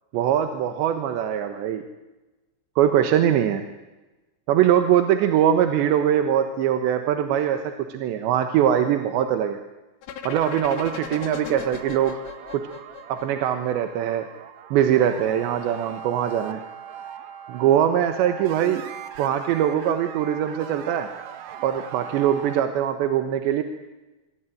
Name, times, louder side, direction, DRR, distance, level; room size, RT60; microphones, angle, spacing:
voice 1, 0.1-1.8 2.8-3.6 4.5-9.6 10.2-12.2 12.5-12.7 13.1-14.3 14.7-16.6 17.5-18.8 19.2-21.1 21.6-23.6, right 10 dB, 80° right, 8 dB, 3.6 m, -22 dB
sound 1, 10.0-13.9, left 8 dB, 75° left, 3.8 m, -38 dB
sound 2, 10.3-22.6, right 9 dB, 60° right, 2.0 m, -40 dB
26.5 x 23.0 x 9.2 m, 1.1 s
omnidirectional pair, 5.0 m